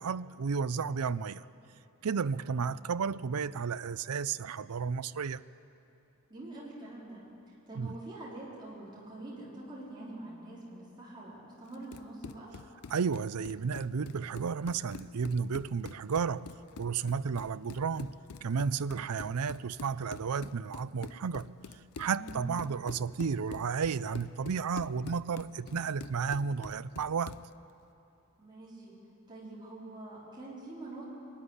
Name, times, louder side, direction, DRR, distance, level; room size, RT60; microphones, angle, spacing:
voice 1, 0.0-1.5 2.0-5.4 7.8-7.9 12.9-16.5 16.8-18.1 18.4-21.5 22.0-27.4, right 5 dB, 85° right, 0.5 m, -32 dB
voice 2, 2.2-2.6 6.3-12.6 22.1-22.4 28.4-29.0 29.3-31.1, right 2 dB, 20° right, 4.1 m, -45 dB
Run, 11.7-27.5, left 5 dB, 80° left, 0.5 m, -47 dB
23.0 x 13.0 x 9.9 m
head